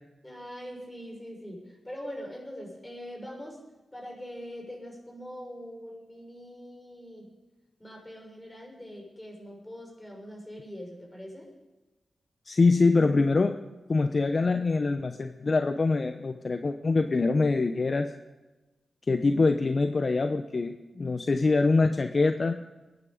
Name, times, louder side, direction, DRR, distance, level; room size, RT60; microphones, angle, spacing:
voice 1, 0.2-3.6 3.9-7.3 7.8-11.5, equal, 15° left, -1 dB, 6.3 m, -42 dB
voice 2, 12.5-13.5 13.9-18.1 19.1-22.6, left 3 dB, 50° left, 8 dB, 0.8 m, -24 dB
21.0 x 11.0 x 5.1 m, 1.1 s
cardioid pair, 50°, 0 cm